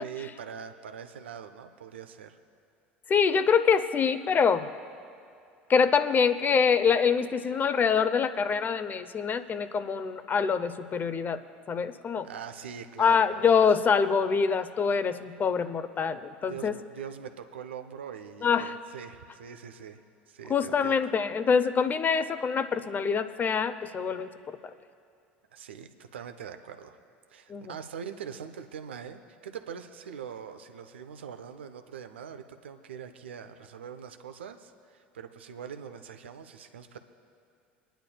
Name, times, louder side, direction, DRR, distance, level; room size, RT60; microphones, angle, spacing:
voice 1, 0.0-2.4 12.2-13.7 16.5-20.0 20.3-21.0 25.5-27.0 27.3-37.0, right 7 dB, 85° right, 8 dB, 0.6 m, -42 dB
voice 2, 3.1-4.7 5.7-12.3 13.0-16.8 18.4-18.7 20.5-24.6 27.5-27.7, left 6 dB, 30° left, 12 dB, 0.7 m, -25 dB
24.5 x 10.0 x 2.3 m, 2.4 s
hypercardioid pair, 75°, 6 cm